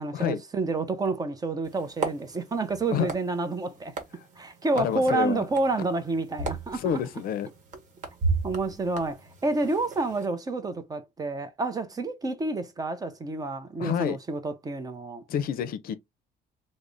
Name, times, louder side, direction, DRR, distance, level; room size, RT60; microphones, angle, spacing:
voice 1, 0.0-4.0 4.4-7.0 8.4-15.2, right 3 dB, 20° right, 0.5 m, -29 dB
sound 1, 1.6-10.2, right 4 dB, 45° right, 1.1 m, -36 dB
voice 2, 4.7-5.5 6.7-7.5 13.8-14.2 15.3-15.9, left 9 dB, 55° left, 0.5 m, -28 dB
3.4 x 2.0 x 3.8 m
cardioid pair, 145°, 18 cm